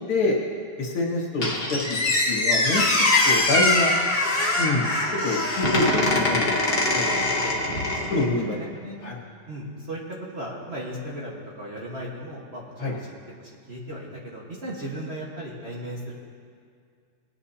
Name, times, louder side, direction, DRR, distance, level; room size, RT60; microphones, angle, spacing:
voice 1, 0.8-2.0 2.3-2.9 3.2-3.9 4.6-4.9 5.2-6.5 6.9-7.1 8.1-8.7 9.0-9.1 12.8-12.9, left 2 dB, 85° left, -2 dB, 2.7 m, -26 dB
Squeak, 1.4-8.3, left 2 dB, 30° left, 1.4 m, -23 dB
voice 2, 7.4-7.8 8.3-9.0 9.5-10.0 10.3-13.1 13.4-16.1, right 1 dB, 35° right, -4 dB, 1.6 m, -36 dB
19.5 x 9.6 x 2.8 m, 2.2 s
omnidirectional pair, 2.3 m